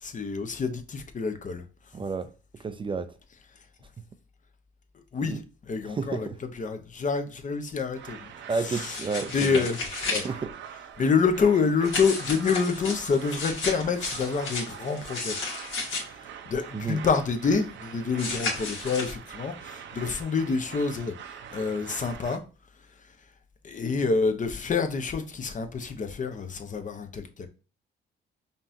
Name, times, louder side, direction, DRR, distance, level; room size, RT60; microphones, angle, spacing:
voice 1, 0.0-1.6 5.1-8.3 8.6-9.0 9.3-9.8 10.1-10.3 11.0-15.3 16.1-22.4 23.6-27.5, left 5 dB, 40° left, 0.7 m, -27 dB
voice 2, 1.9-2.3 2.6-3.1 5.2-5.4 5.8-6.4 8.5-9.7 10.2-10.5 16.7-17.0, right 4 dB, 25° right, 0.4 m, -31 dB
sound 1, 7.9-22.4, right 8 dB, 70° right, 0.6 m, -44 dB
sound 2, 8.8-10.3 11.8-16.0 18.2-19.1, left 3 dB, 70° left, 1.8 m, -33 dB
5.2 x 2.7 x 2.6 m
cardioid pair, 90°, 20 cm